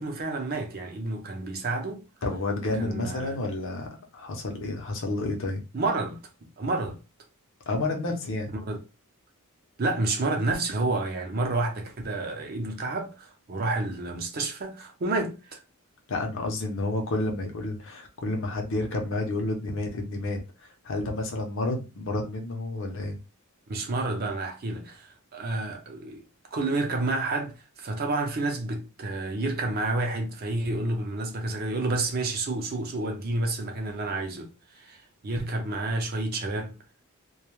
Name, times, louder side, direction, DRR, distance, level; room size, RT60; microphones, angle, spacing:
voice 1, 0.0-2.0 2.8-3.4 5.7-7.0 8.5-8.8 9.8-15.6 23.7-26.2 26.5-36.8, right 2 dB, 45° right, 0.5 m, -30 dB
voice 2, 2.2-5.6 7.7-8.5 16.1-23.2, left 2 dB, 60° left, 0.6 m, -30 dB
2.2 x 2.1 x 3.0 m
head